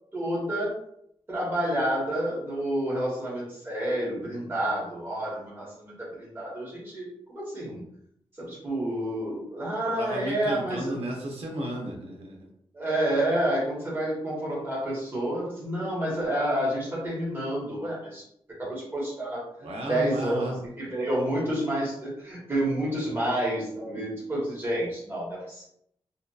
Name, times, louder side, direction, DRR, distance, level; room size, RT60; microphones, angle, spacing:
voice 1, 0.1-0.7 1.3-7.8 8.4-11.0 12.7-18.2 18.6-19.4 19.9-25.7, right 1 dB, 20° right, -5 dB, 1.0 m, -29 dB
voice 2, 10.0-12.5 19.6-20.6 22.9-23.2, right 1 dB, 90° right, -1 dB, 0.7 m, -34 dB
2.7 x 2.4 x 2.2 m, 0.73 s
wide cardioid pair, 165°, 10 cm